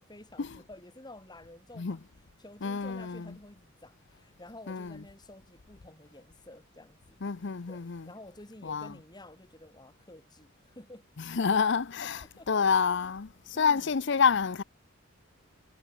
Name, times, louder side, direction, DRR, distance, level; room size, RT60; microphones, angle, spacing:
voice 1, 0.0-2.0 2.4-7.2 7.7-11.1 12.0-12.5 13.5-13.9, left 1 dB, 20° left, 4.1 m, -51 dB
voice 2, 2.6-3.3 4.7-4.9 7.2-8.0 8.6-8.9 11.3-13.3 13.6-14.6, left 6 dB, 55° left, 0.6 m, -28 dB
head